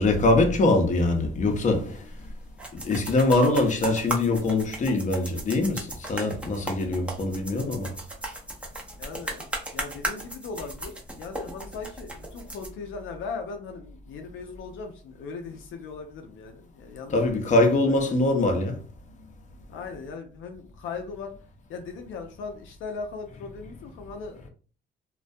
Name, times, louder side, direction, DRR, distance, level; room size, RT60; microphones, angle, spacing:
voice 1, 0.0-2.0 2.7-7.9 17.1-18.8, left 2 dB, 40° left, 0.6 m, -23 dB
sound 1, 1.5-12.7, right 1 dB, 5° right, 0.6 m, -36 dB
voice 2, 9.0-18.2 19.7-21.4 21.7-24.5, left 4 dB, 80° left, 0.5 m, -39 dB
2.2 x 2.1 x 2.6 m
cardioid pair, 90°, 20 cm